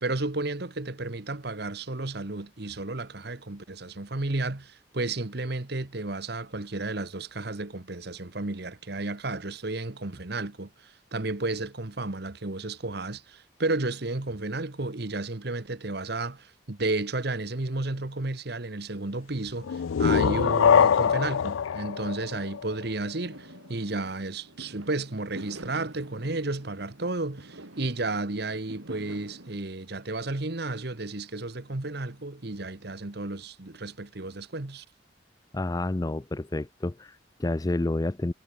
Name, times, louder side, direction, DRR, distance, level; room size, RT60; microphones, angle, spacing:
voice 1, 0.0-34.8, right 2 dB, 55° right, 1.3 m, -32 dB
sound 1, 19.6-23.2, left 7 dB, 85° left, 0.4 m, -23 dB
Fireworks, 23.3-29.6, right 1 dB, 80° right, 3.4 m, -46 dB
voice 2, 35.5-38.3, left 2 dB, 20° left, 0.4 m, -29 dB
head